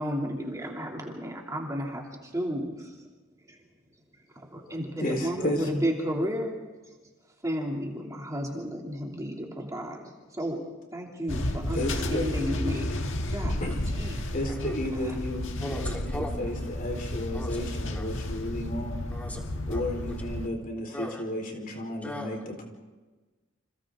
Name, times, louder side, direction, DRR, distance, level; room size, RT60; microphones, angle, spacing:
voice 1, 0.0-3.0 3.5-3.6 4.3-6.6 7.4-10.6 10.9-12.9 13.3-13.6 13.9-14.3 14.9-15.1, equal, 15° right, -1 dB, 2.9 m, -33 dB
voice 2, 4.6-5.7 11.7-12.3 13.6-13.8 14.3-19.0 19.7-22.6, left 1 dB, 45° left, 2 dB, 4.3 m, -33 dB
sound 1, 11.3-20.5, left 1 dB, 65° left, 1.7 m, -32 dB
voice 3, 14.5-14.8 15.6-16.3 17.3-17.6 17.9-18.0 19.1-19.4 19.7-19.8 20.9-21.2 22.0-22.4, equal, 10° left, -1 dB, 3.7 m, -37 dB
29.5 x 27.5 x 3.8 m, 1.2 s
head